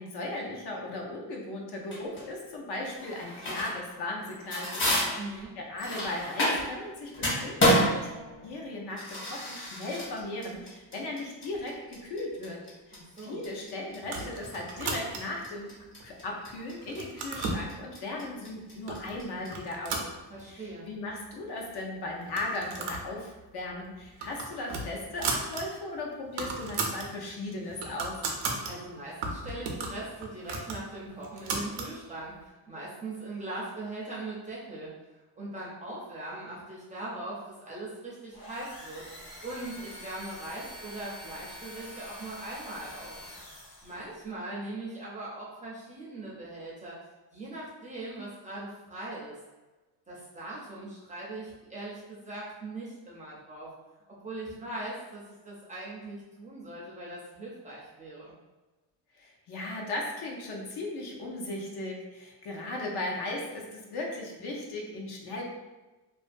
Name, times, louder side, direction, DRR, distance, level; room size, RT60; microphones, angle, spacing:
voice 1, 0.0-5.1 5.6-8.1 8.4-12.6 12.9-15.8 16.0-20.1 20.4-28.2 59.1-65.4, left 2 dB, 70° left, -1 dB, 0.7 m, -37 dB
sound 1, 1.9-2.3 3.0-3.9 4.2-6.8 7.1-19.5, equal, 30° left, 0.6 m, -30 dB
voice 2, 5.2-5.5 12.9-13.4 20.3-20.9 28.7-34.9 35.4-43.2 43.8-47.0 47.3-49.4 50.1-53.7 54.1-58.3, right 2 dB, 20° right, -6 dB, 0.4 m, -40 dB
sound 2, 14.0-15.5 16.0-16.5 16.8-17.7 18.4-18.5 18.9-19.1 19.5-20.7 21.1-21.2 21.4-21.5 22.2-23.1 23.4-23.6 24.0-25.6 26.0-26.1 26.3-27.1 27.5-28.7 29.2-31.9, right 3 dB, 85° right, 0.5 m, -35 dB
sound 3, 38.3-44.1, left 1 dB, 55° left, 1.0 m, -46 dB
2.5 x 2.2 x 2.5 m, 1.2 s
cardioid pair, 165°, 41 cm